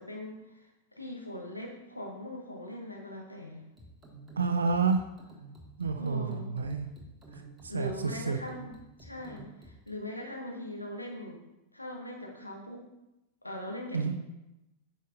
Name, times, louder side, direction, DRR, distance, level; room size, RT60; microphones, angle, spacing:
voice 1, 0.0-3.7 6.0-6.5 7.7-8.7 9.0-11.4 11.7-12.9 13.4-14.2, left 1 dB, 85° left, 0 dB, 1.3 m, -41 dB
sound 1, 3.8-10.0, right 2 dB, 10° right, 1.5 m, -51 dB
voice 2, 4.4-5.1 5.8-6.9 7.3-7.9 8.3-8.4 13.9-14.2, right 5 dB, 70° right, 7 dB, 0.5 m, -29 dB
9.2 x 6.3 x 2.5 m, 0.93 s
figure-of-eight pair, 90°, 0 cm